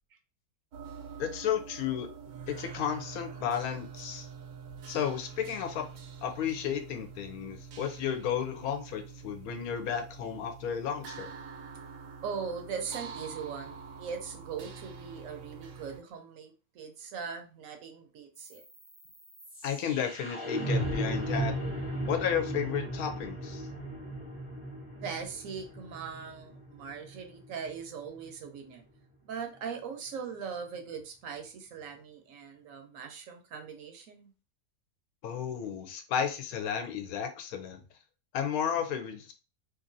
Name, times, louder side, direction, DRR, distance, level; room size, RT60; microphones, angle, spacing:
sound 1, 0.7-16.0, right 6 dB, 85° right, 1.2 m, -46 dB
voice 1, 1.2-2.1 2.5-4.3 4.9-5.9 6.2-11.3 19.6-21.5 22.1-23.7 35.2-37.8 38.3-39.3, left 8 dB, 75° left, 7 dB, 1.0 m, -33 dB
voice 2, 12.2-18.6 25.0-28.8 29.2-34.3, right 6 dB, 65° right, 5 dB, 0.9 m, -40 dB
sound 2, 18.4-28.4, right 1 dB, 25° left, 0.8 m, -36 dB
2.9 x 2.6 x 2.5 m, 0.32 s
omnidirectional pair, 1.6 m